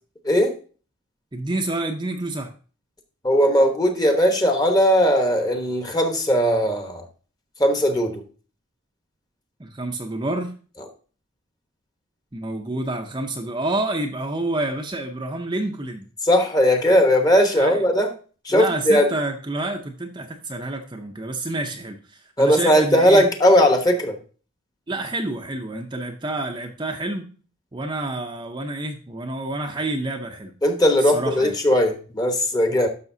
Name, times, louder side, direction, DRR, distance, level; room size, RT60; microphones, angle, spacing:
voice 1, 1.3-2.5 9.6-10.5 12.3-16.1 17.6-17.8 18.5-23.2 24.9-27.2 27.7-30.5 31.0-31.5, right 2 dB, 20° right, 3 dB, 0.7 m, -28 dB
voice 2, 3.2-7.0 7.6-8.2 16.2-18.1 18.4-19.1 22.4-24.2 30.6-32.9, equal, 20° left, 5 dB, 1.1 m, -18 dB
10.5 x 6.5 x 2.7 m, 0.38 s
head